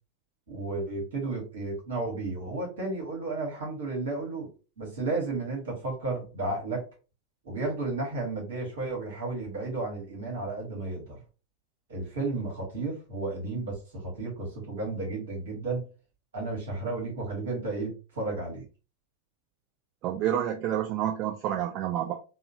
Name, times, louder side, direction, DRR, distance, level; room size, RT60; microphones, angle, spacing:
voice 1, 0.5-4.5 4.8-6.8 7.4-11.2 11.9-15.9 16.3-18.7, right 3 dB, 65° right, -2 dB, 1.5 m, -33 dB
voice 2, 20.0-22.1, right 11 dB, 40° right, 3 dB, 0.3 m, -29 dB
3.5 x 2.1 x 2.6 m, 0.33 s
figure-of-eight pair, 90°, 0 cm